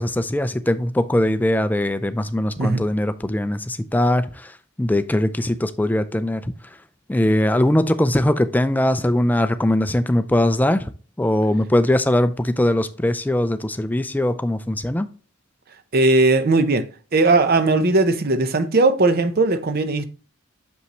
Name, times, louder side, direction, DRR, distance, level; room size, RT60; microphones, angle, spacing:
voice 1, 0.0-6.5 7.1-10.9 11.2-15.1, left 1 dB, 10° left, 0.4 m, -21 dB
voice 2, 15.9-16.9 17.1-20.0, right 2 dB, 45° right, 0.7 m, -18 dB
6.3 x 5.6 x 2.9 m
head